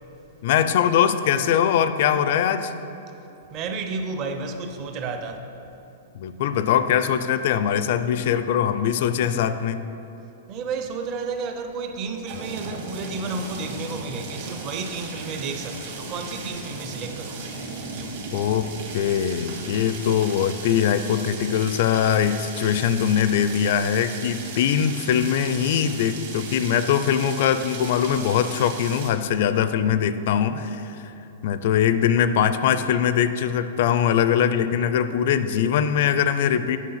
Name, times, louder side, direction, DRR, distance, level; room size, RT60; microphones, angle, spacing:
voice 1, 0.4-2.7 6.1-9.8 18.3-31.1 31.4-36.8, left 9 dB, 50° left, 0.4 m, -22 dB
voice 2, 3.5-5.4 10.5-17.6 17.9-18.3, right 4 dB, 25° right, 0.6 m, -32 dB
sound 1, 12.3-29.1, right 3 dB, 55° right, 1.9 m, -37 dB
9.2 x 5.8 x 5.7 m
supercardioid pair, 165°, 0 cm